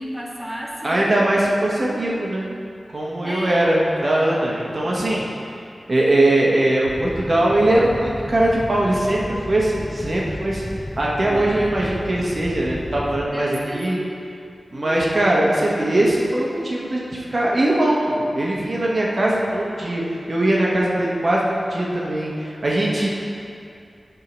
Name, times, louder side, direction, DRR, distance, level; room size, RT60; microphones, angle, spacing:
voice 1, 0.0-1.2 1.5-1.6 3.2-4.3 4.9-5.0 11.2-11.8 13.3-14.2 14.7-15.3 22.9-23.1, right 1 dB, 5° right, -5 dB, 1.3 m, -33 dB
voice 2, 0.8-2.5 2.9-5.3 5.9-10.6 11.0-14.0 14.7-20.0 20.3-23.1, right 1 dB, 50° right, -4 dB, 1.2 m, -20 dB
sound 1, 6.9-13.3, left 1 dB, 10° left, 0.3 m, -33 dB
8.4 x 3.7 x 6.1 m, 2.5 s
wide cardioid pair, 75°, 0 cm